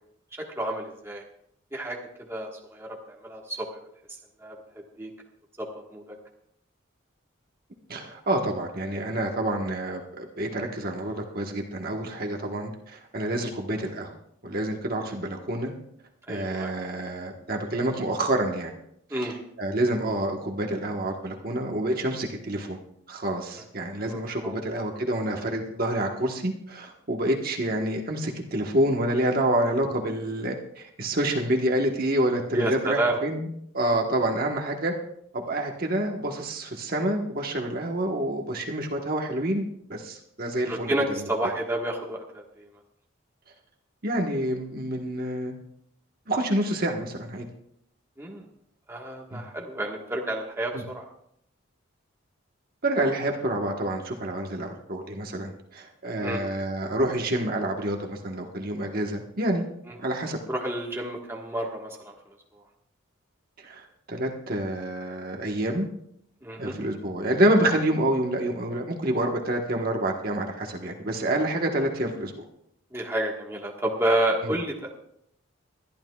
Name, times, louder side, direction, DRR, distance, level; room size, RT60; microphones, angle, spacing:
voice 1, 0.3-1.2 1.7-3.0 3.2-3.7 4.4-5.1 5.6-6.2 16.3-16.7 19.1-19.4 24.1-24.6 32.5-33.2 40.7-42.7 48.2-48.4 48.9-51.0 56.2-56.4 60.5-62.1 66.4-66.8 72.9-74.9, right 1 dB, 10° right, -1 dB, 1.4 m, -30 dB
voice 2, 7.9-14.2 14.4-15.7 16.3-18.7 19.2-22.8 23.1-33.5 33.7-34.9 35.3-40.9 44.0-45.5 46.3-47.4 49.3-49.4 50.7-50.8 52.8-59.7 60.0-60.4 63.6-65.9 66.6-72.3 74.4-74.5, right 1 dB, 45° right, 1 dB, 1.3 m, -28 dB
22.0 x 12.0 x 2.4 m, 0.71 s
head